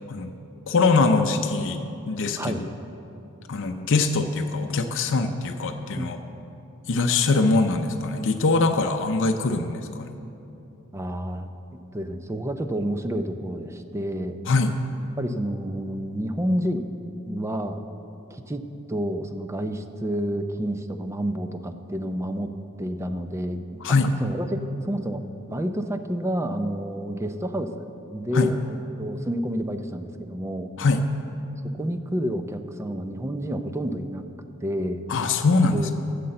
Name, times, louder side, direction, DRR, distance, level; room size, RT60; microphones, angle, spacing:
voice 1, 0.7-1.8 2.1-2.7 3.5-6.2 6.9-10.1 14.5-14.7 23.8-24.1 28.3-28.5 30.8-31.0 35.1-35.9, left 3 dB, 60° left, 5 dB, 0.6 m, -22 dB
voice 2, 5.9-6.4 10.9-11.5 11.9-14.4 15.2-16.9 17.3-17.8 18.3-18.6 18.9-22.5 22.8-23.8 24.2-30.7 31.8-34.2 34.6-35.0 35.7-35.9, equal, 15° right, 8 dB, 0.5 m, -29 dB
9.7 x 6.8 x 7.6 m, 2.8 s
head